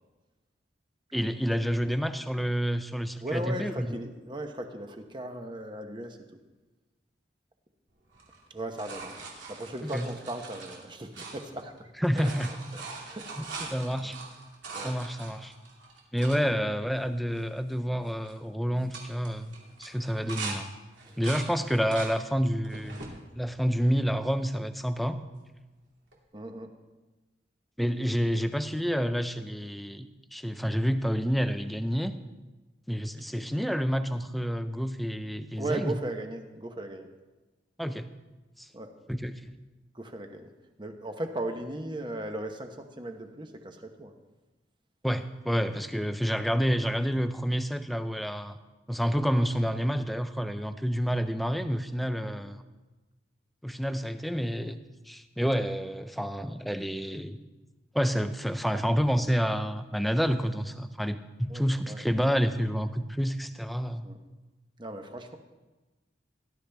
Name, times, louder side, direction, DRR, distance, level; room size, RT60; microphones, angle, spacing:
voice 1, 1.1-3.9 9.9-10.1 12.0-12.5 13.4-14.2 14.8-15.5 16.1-20.7 21.2-23.1 23.3-25.2 27.8-32.1 32.9-35.9 37.8-38.1 38.6-38.7 39.1-39.4 45.0-48.5 48.9-52.6 53.6-54.8 55.1-57.4 57.9-64.1, equal, ahead, 9 dB, 0.5 m, -29 dB
voice 2, 3.2-6.2 8.5-9.1 9.5-12.3 12.7-13.7 14.0-14.1 14.7-14.9 21.0-21.2 26.3-26.7 35.6-37.1 38.7-38.9 39.9-40.5 40.8-44.1 52.2-52.5 61.5-62.0 64.0-64.2 64.8-65.4, right 1 dB, 25° right, 5 dB, 1.0 m, -37 dB
sound 1, 8.1-11.8 12.0-16.4 17.0-17.1 17.3-17.7 18.0-18.3 18.8-20.6 20.9-22.1 22.6-23.1 23.8-24.5 26.1-26.2, right 4 dB, 80° right, 2.6 m, -42 dB
18.0 x 11.5 x 3.5 m, 1.2 s
head